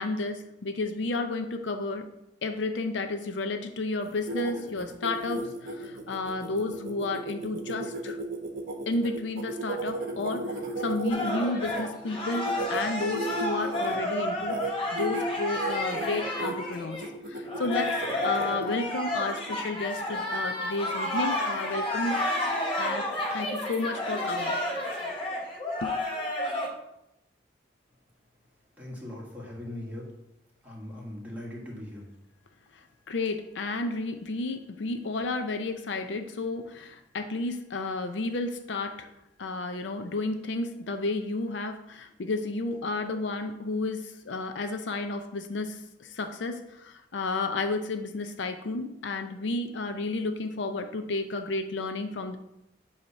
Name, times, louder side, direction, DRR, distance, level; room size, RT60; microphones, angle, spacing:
voice 1, 0.0-2.1 2.4-8.2 8.9-17.0 17.3-18.0 18.2-22.2 22.8-24.6 25.8-25.9 33.1-39.1 39.4-52.4, left 3 dB, 75° left, 7 dB, 0.5 m, -32 dB
sound 1, 4.0-11.8 12.3-14.0 14.4-14.7 15.0-15.3 15.6-16.5 17.0-18.7, right 2 dB, 50° right, 0.9 m, -35 dB
sound 2, 11.1-17.1 17.5-26.7, left 1 dB, 30° left, 1.1 m, -31 dB
voice 2, 28.8-30.1 30.6-32.1, left 1 dB, 10° right, -4 dB, 1.6 m, -40 dB
7.9 x 2.9 x 5.6 m, 0.84 s
head